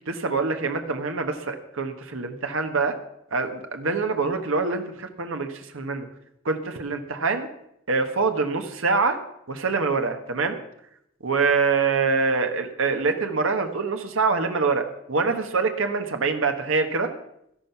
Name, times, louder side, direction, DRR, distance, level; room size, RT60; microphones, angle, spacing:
voice 1, 0.1-3.0 3.3-6.1 6.4-7.5 7.9-9.2 9.5-10.6 11.2-17.1, right 4 dB, 75° right, 6 dB, 1.2 m, -25 dB
12.5 x 11.5 x 5.7 m, 0.78 s
head